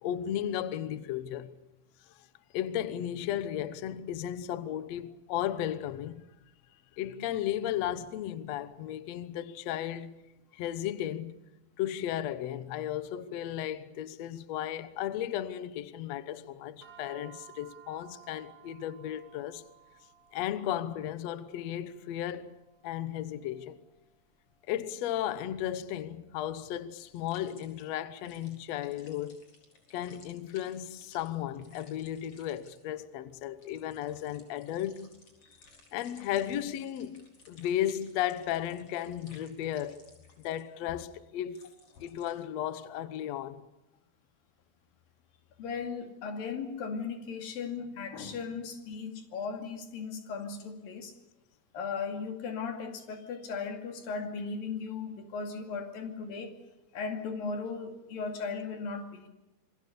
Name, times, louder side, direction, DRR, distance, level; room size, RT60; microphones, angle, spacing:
voice 1, 0.0-1.5 2.5-6.2 7.0-10.1 10.5-11.3 11.8-19.6 20.3-23.8 24.7-29.4 29.9-35.1 35.9-40.1 40.4-41.6 42.0-43.6, left 11 dB, 90° left, 1.4 m, -35 dB
sound 1, 16.8-27.3, right 9 dB, 35° right, 5.4 m, -58 dB
sound 2, 27.0-27.9 28.1-42.3, left 3 dB, 35° left, 4.7 m, -60 dB
voice 2, 45.6-51.1 51.7-56.5 56.9-59.3, left 5 dB, 65° left, 4.0 m, -37 dB
27.0 x 23.0 x 6.9 m
omnidirectional pair, 4.6 m